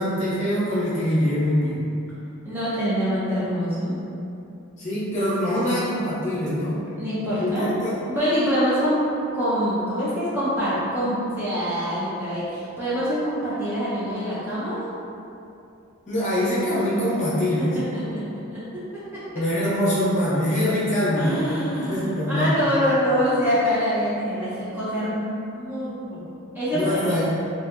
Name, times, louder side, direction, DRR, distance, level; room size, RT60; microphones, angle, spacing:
voice 1, 0.0-1.9 4.8-6.8 7.4-8.0 16.1-17.8 19.3-22.5 26.7-27.3, equal, 35° left, -10 dB, 0.7 m, -23 dB
voice 2, 2.4-4.0 5.7-5.9 7.0-7.7 8.1-9.0 9.3-14.8 17.6-18.8 19.1-19.4 21.2-26.2 26.5-27.3, equal, 10° right, -11 dB, 0.4 m, -25 dB
2.6 x 2.5 x 2.2 m, 2.7 s
head